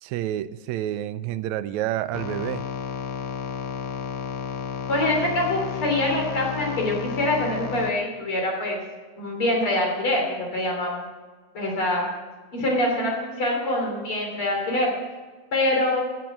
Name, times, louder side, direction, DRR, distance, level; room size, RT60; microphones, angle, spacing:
voice 1, 0.0-2.6, right 13 dB, 80° right, 14 dB, 1.9 m, -29 dB
sound 1, 2.1-7.9, left 7 dB, 70° left, 2.0 m, -32 dB
voice 2, 4.9-8.8 9.2-11.1 11.5-12.0 12.5-14.9 15.5-16.0, left 1 dB, 45° left, 0 dB, 3.9 m, -24 dB
15.5 x 8.1 x 6.1 m, 1.4 s
omnidirectional pair, 3.4 m